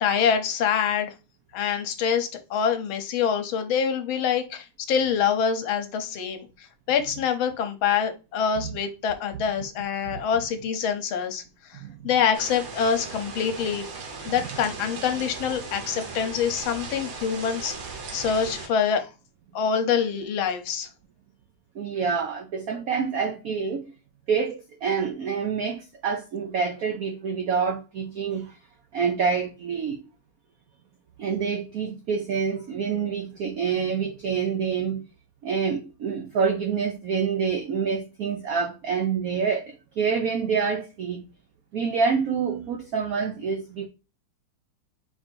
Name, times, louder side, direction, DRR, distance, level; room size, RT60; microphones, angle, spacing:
voice 1, 0.0-1.1 1.5-11.4 11.7-11.8 12.0-13.9 14.3-17.7 18.1-19.1 19.5-20.9, left 7 dB, 75° left, 1.5 m, -25 dB
sound 1, 12.3-18.7, right 4 dB, 55° right, 1.3 m, -37 dB
voice 2, 21.7-23.9 24.3-28.6 28.9-30.0 31.2-35.0 35.4-41.2 41.7-43.9, right 6 dB, 80° right, 0.7 m, -27 dB
4.8 x 2.5 x 4.3 m
omnidirectional pair, 2.3 m